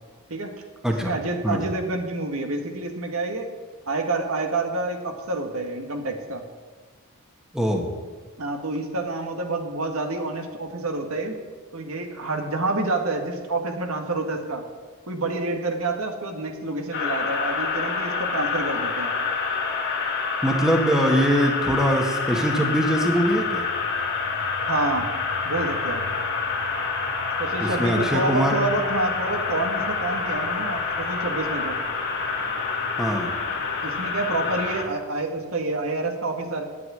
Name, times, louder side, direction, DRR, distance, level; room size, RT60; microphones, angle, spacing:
voice 1, 1.0-3.5 3.9-6.4 8.4-11.3 11.7-14.6 15.1-19.2 24.7-25.1 25.4-26.0 27.4-31.8 33.8-36.6, right 2 dB, 70° right, 4 dB, 1.8 m, -28 dB
voice 2, 7.5-7.9 20.4-23.6 27.6-28.6 33.0-33.3, equal, 5° right, 1 dB, 1.5 m, -22 dB
sound 1, 16.9-34.8, left 4 dB, 50° left, 2.1 m, -27 dB
9.6 x 8.5 x 9.7 m, 1.4 s
head